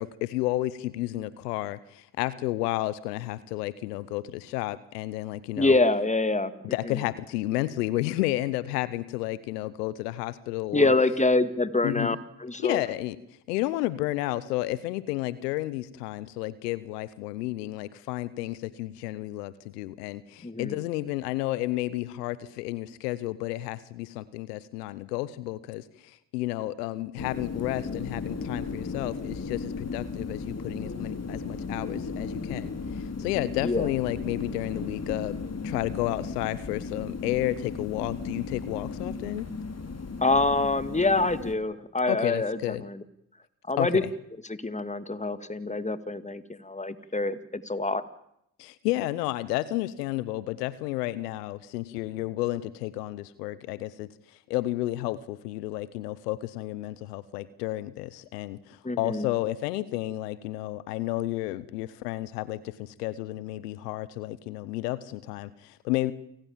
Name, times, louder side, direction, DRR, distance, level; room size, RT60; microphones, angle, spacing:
voice 1, 0.0-5.8 6.7-10.9 11.8-12.2 12.6-13.2 13.5-35.4 35.6-39.5 42.1-42.8 43.8-44.1 48.6-54.1 54.5-66.1, left 16 dB, 90° left, 18 dB, 0.9 m, -31 dB
voice 2, 5.6-6.5 6.9-7.0 10.7-12.2 12.4-12.8 20.4-20.8 33.6-33.9 40.2-43.0 43.7-44.0 44.5-48.0 58.8-59.3, left 2 dB, 15° left, 13 dB, 2.1 m, -26 dB
sound 1, 27.2-41.6, left 4 dB, 35° left, 4.0 m, -35 dB
29.0 x 18.0 x 7.4 m, 0.78 s
hypercardioid pair, 45°, 46 cm